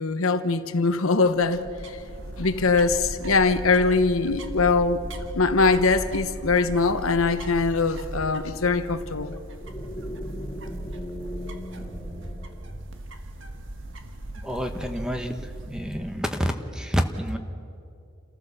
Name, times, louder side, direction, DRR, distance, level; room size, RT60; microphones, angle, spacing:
voice 1, 0.0-2.0 2.4-5.0 5.3-9.3, left 4 dB, 90° left, 9 dB, 1.1 m, -22 dB
sound 1, 1.3-16.5, right 1 dB, 65° right, 1.5 m, -38 dB
sound 2, 9.6-13.3, equal, 20° left, 2.7 m, -39 dB
voice 2, 14.4-17.4, equal, 5° right, 6 dB, 1.1 m, -28 dB
29.0 x 14.5 x 7.0 m, 2.5 s
head